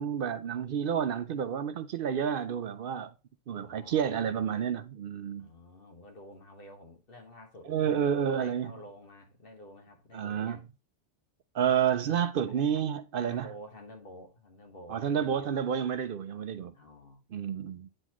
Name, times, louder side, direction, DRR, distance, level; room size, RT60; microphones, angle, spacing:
voice 1, 0.0-3.1 3.5-5.5 7.7-8.7 10.1-10.6 11.5-13.5 14.9-16.7 17.3-17.9, right 8 dB, 65° right, 0.7 m, -30 dB
voice 2, 3.5-4.4 5.4-10.6 12.5-12.7 13.2-15.5 16.7-17.2, equal, 60° left, 1.6 m, -49 dB
8.9 x 4.0 x 3.0 m
omnidirectional pair, 1.1 m